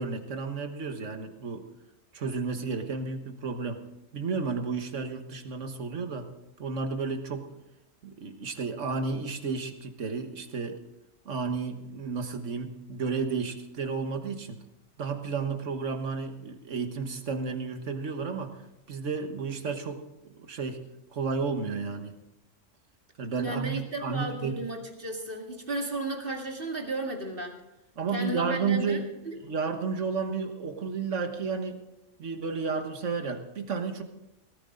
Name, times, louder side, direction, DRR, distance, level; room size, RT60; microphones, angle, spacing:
voice 1, 0.0-1.6 2.1-3.8 4.1-6.3 6.6-7.5 8.0-10.8 11.2-14.6 15.0-18.6 18.9-20.9 21.1-22.1 23.2-24.6 28.0-29.1 29.4-31.8 32.2-34.0, right 5 dB, 75° right, 6 dB, 1.7 m, -32 dB
voice 2, 23.4-27.6 28.1-29.4, right 2 dB, 45° right, 2 dB, 2.2 m, -34 dB
18.5 x 13.5 x 3.9 m, 0.91 s
omnidirectional pair, 1.3 m